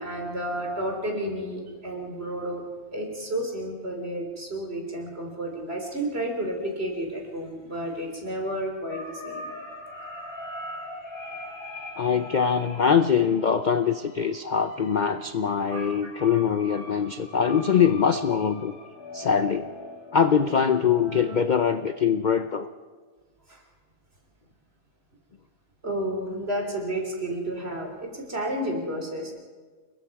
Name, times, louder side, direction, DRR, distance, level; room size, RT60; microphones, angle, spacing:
voice 1, 0.0-2.6 2.9-9.5 15.7-16.1 23.5-23.6 25.8-29.3, right 1 dB, 40° right, 2 dB, 3.9 m, -31 dB
sound 1, 8.9-21.4, left 1 dB, 80° left, 3.9 m, -42 dB
voice 2, 12.0-18.7 19.1-19.7 20.1-22.7, left 7 dB, 50° left, 9 dB, 0.5 m, -23 dB
29.5 x 21.0 x 4.8 m, 1.5 s
omnidirectional pair, 1.6 m